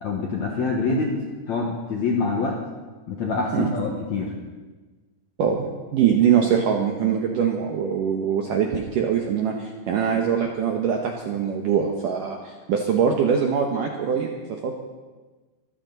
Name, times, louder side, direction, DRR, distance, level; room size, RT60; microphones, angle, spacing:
voice 1, 0.0-1.2 1.5-2.6 3.1-4.3, left 4 dB, 65° left, 0 dB, 1.8 m, -25 dB
voice 2, 5.9-14.7, right 7 dB, 75° right, 2 dB, 2.0 m, -23 dB
23.5 x 14.0 x 4.0 m, 1.3 s
omnidirectional pair, 5.2 m